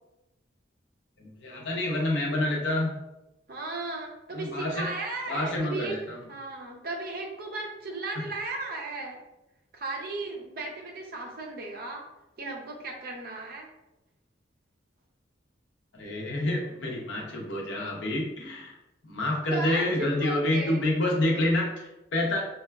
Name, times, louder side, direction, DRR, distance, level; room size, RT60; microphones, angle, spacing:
voice 1, 1.2-2.9 4.3-4.9 5.3-6.2 15.9-18.7 19.0-22.4, left 1 dB, 70° left, -1 dB, 0.7 m, -28 dB
voice 2, 3.5-6.0 6.3-9.2 9.7-12.0 12.4-13.7 19.5-20.9, right 2 dB, 50° right, 1 dB, 0.5 m, -35 dB
4.6 x 2.2 x 2.2 m, 0.95 s
head